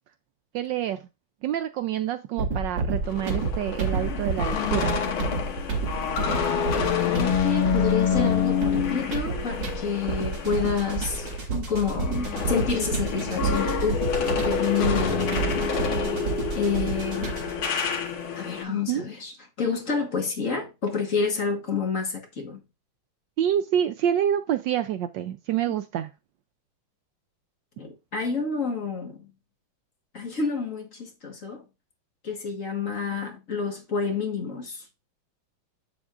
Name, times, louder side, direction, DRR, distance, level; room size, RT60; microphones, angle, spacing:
voice 1, 0.5-1.1 1.4-5.0 18.7-19.0 23.4-26.1, right 10 dB, 75° right, 1.1 m, -27 dB
sound 1, 2.4-17.6, right 4 dB, 60° right, 2.7 m, -30 dB
sound 2, 3.0-11.4 11.8-18.6, left 7 dB, 80° left, 2.1 m, -28 dB
voice 2, 7.1-11.3 11.5-14.1 14.4-15.8 16.5-17.4 18.3-22.6 27.8-29.3 30.1-31.6 32.2-34.9, left 5 dB, 40° left, 1.7 m, -29 dB
7.8 x 7.3 x 2.5 m
omnidirectional pair, 2.3 m